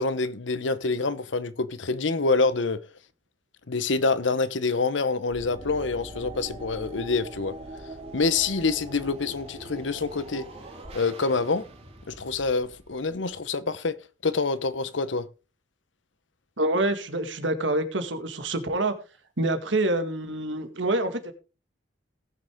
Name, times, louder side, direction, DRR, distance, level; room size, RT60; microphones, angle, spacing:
voice 1, 0.0-2.8 3.7-7.5 8.1-10.4 10.9-11.7 12.1-14.0 14.2-15.3, left 3 dB, 75° left, 0.9 m, -26 dB
sound 1, 5.3-13.4, right 1 dB, 35° right, 3.2 m, -42 dB
voice 2, 16.6-19.0 19.4-21.3, right 2 dB, 75° right, 1.9 m, -26 dB
18.5 x 6.4 x 3.6 m
head